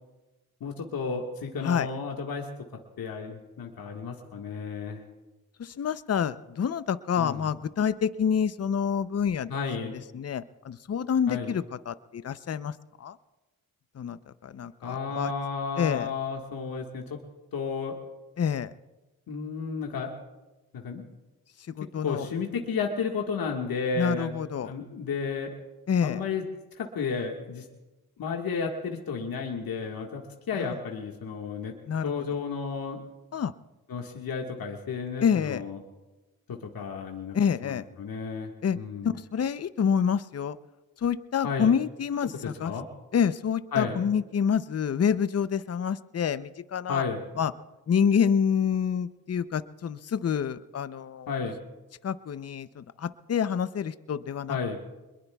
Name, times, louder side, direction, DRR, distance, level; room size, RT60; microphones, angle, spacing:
voice 1, 0.6-2.5 3.0-5.0 7.2-7.4 9.5-9.9 11.3-11.5 14.8-17.2 17.5-17.9 19.3-20.1 20.7-21.0 22.0-24.3 24.6-25.5 26.0-26.4 26.7-27.7 28.2-31.7 32.0-33.0 33.9-35.8 36.5-37.3 37.6-39.1 41.4-41.7 42.6-42.8 43.7-43.9 46.9-47.2 51.3-51.5 54.5-54.8, left 5 dB, 70° left, 1 dB, 1.7 m, -32 dB
voice 2, 5.6-9.5 9.9-13.2 13.9-15.3 15.8-16.1 18.4-18.7 21.8-22.3 24.0-24.7 25.9-26.2 30.6-30.8 31.9-32.2 33.3-33.5 35.2-35.6 37.3-37.8 38.6-38.8 39.0-40.6 41.0-42.7 43.1-47.0 47.4-47.5 47.9-51.3 52.0-54.6, left 7 dB, 40° left, 14 dB, 0.7 m, -27 dB
23.5 x 22.0 x 2.3 m, 1.1 s
supercardioid pair, 50°, 37 cm